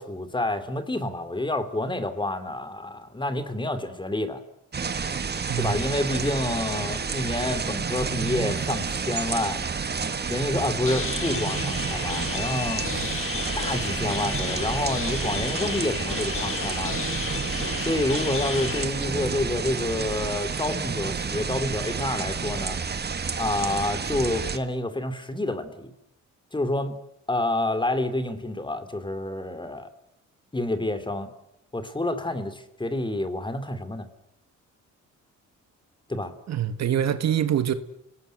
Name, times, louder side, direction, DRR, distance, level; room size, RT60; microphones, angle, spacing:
voice 1, 0.0-4.4 5.6-9.6 10.3-13.1 13.5-17.1 17.8-22.8 23.4-25.9 26.5-27.0 27.3-29.9 30.5-31.3 31.7-34.1 36.1-36.3, left 1 dB, 15° left, 3.2 m, -28 dB
sound 1, 4.7-24.6, right 5 dB, 35° right, 2.0 m, -30 dB
sound 2, 10.8-18.8, left 6 dB, 45° left, 2.5 m, -33 dB
voice 2, 36.5-37.7, right 10 dB, 60° right, 1.8 m, -24 dB
29.5 x 19.5 x 8.1 m
cardioid pair, 90°, 30 cm